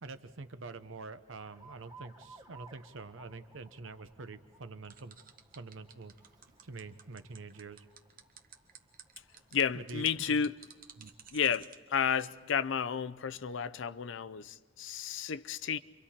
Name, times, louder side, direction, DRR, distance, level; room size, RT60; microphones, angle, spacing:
voice 1, 0.0-5.2 5.5-6.1 6.5-7.9 9.7-10.0 10.3-10.4 11.0-11.1, right 3 dB, 75° right, 0.9 m, -46 dB
Alarm, 1.4-11.5, right 3 dB, 20° right, 1.0 m, -60 dB
sound 1, 4.8-11.8, right 8 dB, 45° right, 1.1 m, -53 dB
voice 2, 9.5-10.6 11.3-15.8, left 7 dB, 70° left, 0.5 m, -32 dB
29.0 x 24.0 x 4.4 m
head